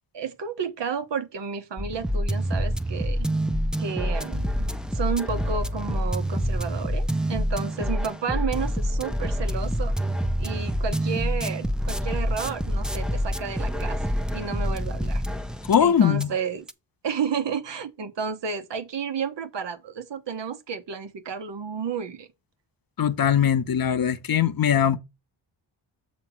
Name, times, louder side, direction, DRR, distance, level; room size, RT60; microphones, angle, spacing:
voice 1, 0.1-3.3 3.8-9.9 10.4-15.2 15.8-16.7 17.0-22.3, right 6 dB, 65° right, 1.1 m, -32 dB
sound 1, 1.8-15.9 16.2-16.3 16.7-16.8, equal, ahead, 0.6 m, -27 dB
voice 2, 15.7-16.3 23.0-25.0, left 8 dB, 50° left, 0.8 m, -21 dB
7.0 x 3.1 x 5.7 m
cardioid pair, 75°, 46 cm